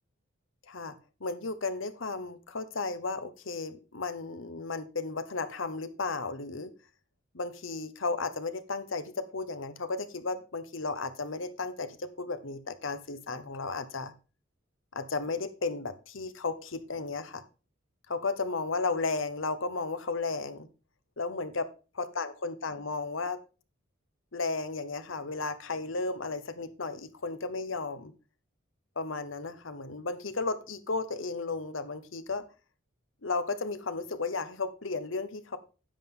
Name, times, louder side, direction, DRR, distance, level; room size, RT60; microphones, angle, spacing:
voice 1, 1.2-6.7 7.3-14.1 14.9-17.4 18.1-20.7 21.2-21.7 22.0-23.4 24.3-28.1 29.0-32.4 33.2-35.6, left 3 dB, 80° left, 11 dB, 1.1 m, -34 dB
10.0 x 7.5 x 3.8 m, 0.33 s
head